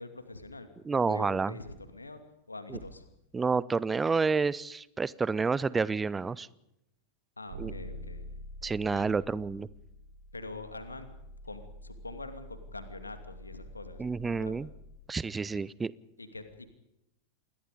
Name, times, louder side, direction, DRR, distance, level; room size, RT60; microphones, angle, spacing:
voice 1, 0.0-0.7 1.1-2.2 2.5-3.0 7.4-8.2 8.9-9.1 10.3-11.1 11.4-14.6 16.2-16.7, left 2 dB, 80° left, 8 dB, 2.6 m, -44 dB
voice 2, 0.8-1.5 2.7-2.8 3.3-6.5 7.6-7.7 8.6-9.7 14.0-14.7 15.1-15.9, right 4 dB, 15° right, 21 dB, 0.8 m, -29 dB
sound 1, 7.5-15.0, equal, 60° right, 3.5 m, -46 dB
29.0 x 21.5 x 5.3 m, 0.82 s
figure-of-eight pair, 90°, 0 cm